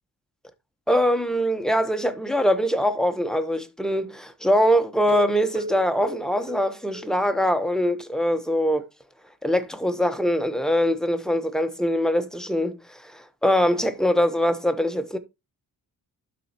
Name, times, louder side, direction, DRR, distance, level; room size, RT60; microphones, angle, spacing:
voice 1, 0.9-8.9 9.4-15.2, equal, ahead, 0.9 m, -23 dB
sound 1, 5.0-7.6 7.9-8.0 8.3-8.4 8.8-8.9, right 1 dB, 50° right, 2.9 m, -36 dB
12.0 x 4.2 x 2.9 m
cardioid pair, 105°, 37 cm